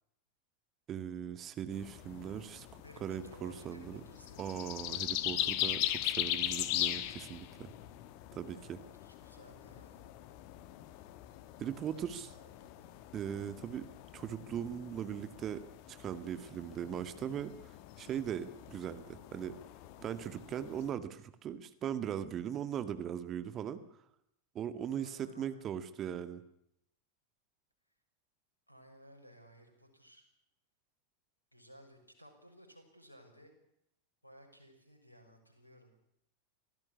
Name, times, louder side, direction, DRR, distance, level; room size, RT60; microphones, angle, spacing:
voice 1, 0.9-4.0 4.4-7.7 8.3-8.8 11.6-12.3 13.1-13.9 14.1-15.6 15.9-19.6 20.0-23.8 24.5-26.4, right 9 dB, 30° right, 11 dB, 1.9 m, -39 dB
sound 1, 1.7-20.9, left 14 dB, 45° left, 1.6 m, -40 dB
voice 2, 2.8-4.7 8.5-10.2 11.9-12.9 25.0-25.7 28.7-30.2 31.5-33.6 34.2-35.9, equal, 85° left, 4 dB, 6.5 m, -58 dB
25.0 x 16.5 x 9.9 m, 0.76 s
figure-of-eight pair, 90°, 0 cm